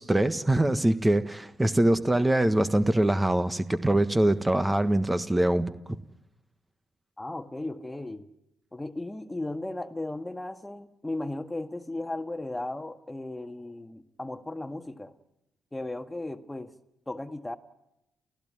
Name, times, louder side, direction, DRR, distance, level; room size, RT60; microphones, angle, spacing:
voice 1, 0.0-5.7, right 1 dB, 15° right, 10 dB, 1.5 m, -23 dB
voice 2, 7.2-8.3 8.7-15.1 15.7-16.7 17.1-17.6, left 2 dB, 15° left, 8 dB, 1.7 m, -36 dB
30.0 x 15.0 x 9.5 m, 0.89 s
hypercardioid pair, 50°, 0 cm